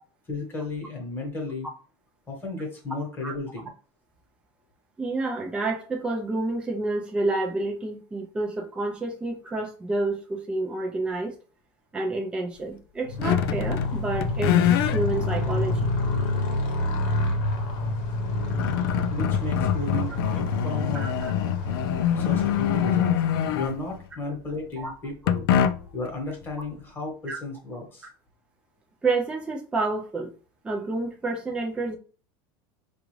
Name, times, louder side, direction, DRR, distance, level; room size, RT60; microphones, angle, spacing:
voice 1, 0.3-1.7 2.3-3.7 19.1-21.1 22.2-25.5 25.9-28.1, left 3 dB, 15° left, 1.2 m, -34 dB
voice 2, 5.0-11.3 11.9-15.9 20.9-21.1 24.8-24.9 27.3-27.4 28.0-28.1 29.0-30.3 30.6-32.0, right 2 dB, 10° right, 0.5 m, -29 dB
Motorcycle, 13.0-23.7, left 2 dB, 55° left, 0.9 m, -28 dB
sound 1, 13.2-13.9 14.2-15.0 15.7-15.8 17.8-17.9 18.3-24.0 25.3-26.1, left 10 dB, 75° left, 0.4 m, -24 dB
4.9 x 2.4 x 3.1 m
supercardioid pair, 165°, 13 cm